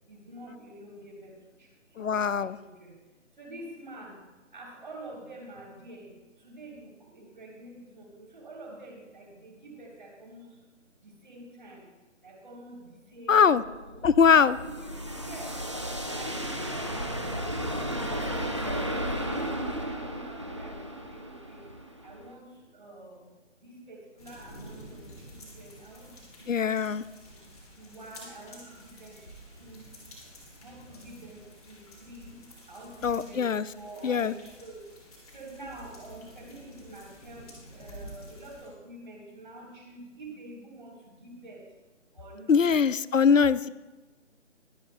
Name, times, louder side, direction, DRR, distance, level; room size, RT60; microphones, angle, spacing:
voice 1, 0.1-2.9 3.3-10.6 11.0-11.9 12.2-13.7 14.3-15.7 16.1-23.3 23.6-26.8 27.7-30.0 30.5-35.0 35.3-41.7 42.1-42.7 43.6-43.7, right 2 dB, 40° right, -1 dB, 3.7 m, -47 dB
voice 2, 2.0-2.6 13.3-13.6 14.0-14.6 26.5-27.0 33.0-33.6 34.0-34.3 42.5-43.7, left 6 dB, 80° left, 18 dB, 0.5 m, -22 dB
sound 1, 13.4-22.3, equal, 25° right, 0.6 m, -34 dB
sound 2, 24.2-38.7, equal, 30° left, 2.6 m, -50 dB
21.5 x 9.5 x 2.3 m, 1.2 s
figure-of-eight pair, 155°, 38 cm